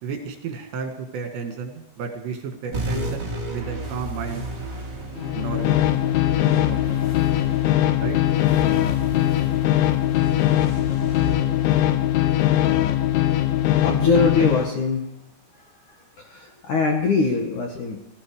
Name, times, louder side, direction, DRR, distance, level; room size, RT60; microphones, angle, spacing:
voice 1, 0.0-4.5 5.3-5.8 6.3-7.0 8.0-8.2, right 5 dB, 70° right, 4 dB, 4.1 m, -32 dB
sound 1, 2.7-13.6, right 1 dB, 25° right, 3.3 m, -34 dB
sound 2, 5.2-14.7, left 13 dB, 90° left, 3.3 m, -21 dB
voice 2, 13.8-15.1 16.2-18.0, left 4 dB, 55° left, 2 dB, 2.4 m, -22 dB
17.5 x 16.5 x 4.9 m, 0.81 s
omnidirectional pair, 5.4 m